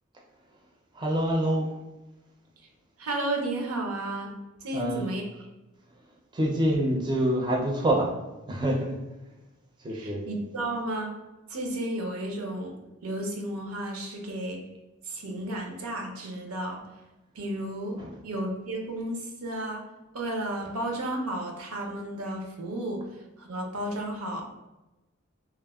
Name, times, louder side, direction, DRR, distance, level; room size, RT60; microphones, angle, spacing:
voice 1, 0.9-1.7 4.7-5.1 6.3-8.1 8.5-8.9 9.8-10.2 18.0-18.2, right 1 dB, 20° right, -1 dB, 0.4 m, -26 dB
voice 2, 3.0-4.4 4.6-5.2 9.9-11.1 11.5-12.8 13.0-14.6 15.1-16.8 17.4-19.8 20.1-23.0 23.4-24.4, right 1 dB, 85° right, 2 dB, 0.6 m, -33 dB
3.3 x 2.0 x 2.2 m, 1.0 s
head